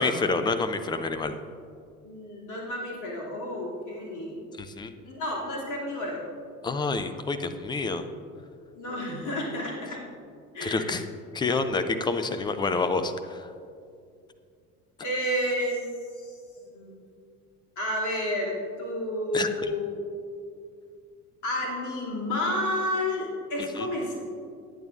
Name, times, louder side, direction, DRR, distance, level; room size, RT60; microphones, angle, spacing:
voice 1, 0.0-1.3 4.6-4.9 6.6-8.0 10.6-11.0 11.3-13.4 19.3-19.5 23.8-23.9, left 3 dB, 10° left, 9 dB, 0.4 m, -28 dB
voice 2, 2.0-4.4 5.0-6.2 8.7-10.0 10.5-10.9 15.0-15.9 16.1-16.4 16.7-16.9 17.8-20.0 21.4-24.2, left 1 dB, 40° left, -3 dB, 2.9 m, -31 dB
19.5 x 8.8 x 2.6 m, 2.3 s
figure-of-eight pair, 65°, 46 cm